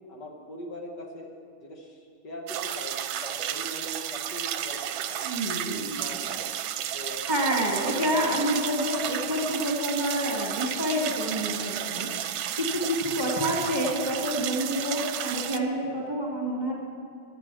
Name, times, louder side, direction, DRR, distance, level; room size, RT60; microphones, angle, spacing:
voice 1, 0.1-4.8 5.1-5.3 5.7-6.5 6.9-7.3 7.7-8.7 13.3-13.4, left 1 dB, 55° left, 1 dB, 1.9 m, -41 dB
sound 1, 2.5-15.6, right 10 dB, 75° right, 1.3 m, -32 dB
voice 2, 5.2-6.0 7.3-12.1 12.5-16.7, equal, 20° right, -3 dB, 1.8 m, -28 dB
15.5 x 9.9 x 6.2 m, 2.2 s
omnidirectional pair, 2.3 m